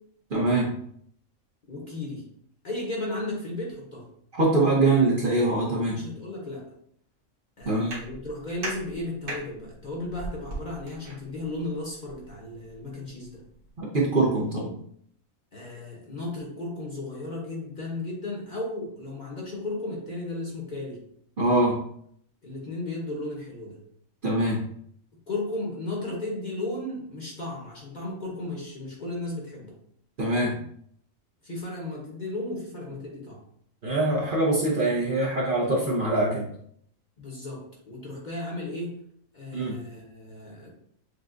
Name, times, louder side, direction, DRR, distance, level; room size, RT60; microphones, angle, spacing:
voice 1, 0.3-0.7 4.3-6.0 7.7-7.9 13.8-14.7 21.4-21.8 24.2-24.6 30.2-30.6 33.8-36.4 39.5-39.7, right 2 dB, 45° right, -4 dB, 0.8 m, -23 dB
voice 2, 1.7-2.3 2.6-4.1 5.9-6.7 7.6-13.4 15.5-21.0 22.4-23.8 25.3-29.7 31.4-33.4 37.2-39.0 39.3-40.7, left 2 dB, 40° left, -3 dB, 0.9 m, -35 dB
sound 1, 7.6-13.8, right 2 dB, 90° right, 1.5 m, -41 dB
6.5 x 2.3 x 2.5 m, 0.66 s
omnidirectional pair, 1.4 m